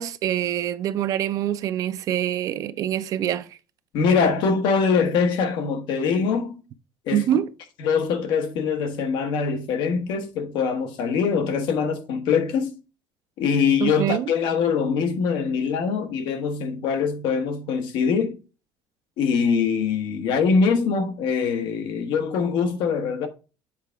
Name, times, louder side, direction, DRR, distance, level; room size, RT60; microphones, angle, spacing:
voice 1, 0.0-3.5 7.1-7.5 13.8-14.3, right 11 dB, 40° right, 0.4 m, -25 dB
voice 2, 3.9-6.6 7.0-7.3 7.8-12.7 13.4-18.4 19.2-23.3, left 5 dB, 55° left, 1.2 m, -23 dB
7.5 x 4.8 x 3.3 m
cardioid pair, 175°, 9 cm